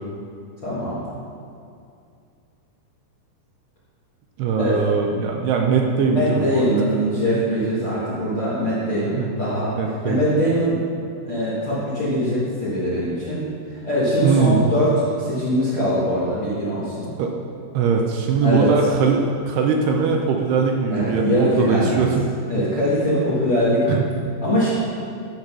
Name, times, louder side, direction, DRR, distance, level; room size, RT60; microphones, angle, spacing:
voice 1, 0.6-1.0 4.6-4.8 6.1-9.7 10.0-10.8 11.2-13.4 13.7-17.1 18.4-18.7 20.9-22.1 22.5-24.0 24.4-24.7, equal, 50° left, -10 dB, 1.7 m, -22 dB
voice 2, 4.4-6.7 9.0-9.4 9.8-10.2 14.2-14.7 17.2-17.3 17.7-22.3 23.9-24.0, right 5 dB, 80° right, 2 dB, 2.5 m, -21 dB
12.0 x 5.3 x 6.0 m, 2.4 s
omnidirectional pair, 5.1 m